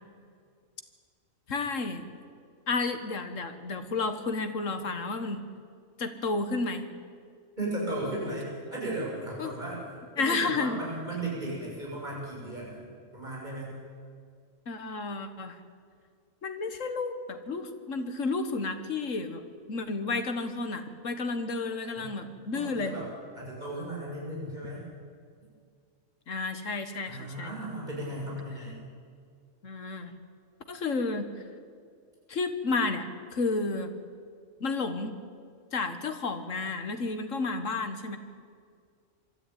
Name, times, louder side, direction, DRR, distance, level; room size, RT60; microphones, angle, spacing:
voice 1, 1.5-2.0 2.7-5.4 6.0-6.9 9.4-9.5 10.2-10.8 14.7-15.6 16.4-19.4 19.7-23.0 26.3-27.5 29.6-30.1 30.7-31.3 32.3-33.9 34.6-35.2 35.7-38.2, left 3 dB, 70° left, 8 dB, 1.8 m, -31 dB
voice 2, 7.6-9.8 10.2-12.8 13.1-13.7 22.0-22.1 22.5-23.1 23.3-24.8 27.1-28.8, right 1 dB, 35° right, -5 dB, 7.5 m, -35 dB
23.5 x 13.5 x 9.3 m, 2.1 s
omnidirectional pair, 1.4 m